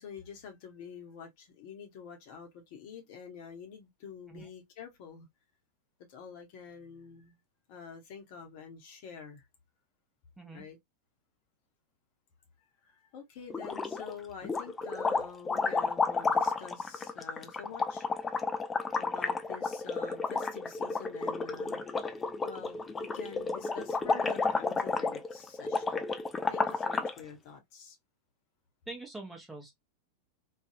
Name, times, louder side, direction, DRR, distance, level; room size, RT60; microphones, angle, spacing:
voice 1, 0.0-5.3 6.1-7.4 7.7-9.4 10.5-10.8 12.8-18.0 19.0-21.8 22.1-26.0 26.5-28.0, left 6 dB, 45° left, 0.8 m, -47 dB
sound 1, 13.5-14.1 14.4-27.2, left 4 dB, 15° left, 0.4 m, -32 dB
voice 2, 28.9-29.7, right 2 dB, 5° right, 0.9 m, -44 dB
2.6 x 2.3 x 2.5 m
figure-of-eight pair, 90°, 0 cm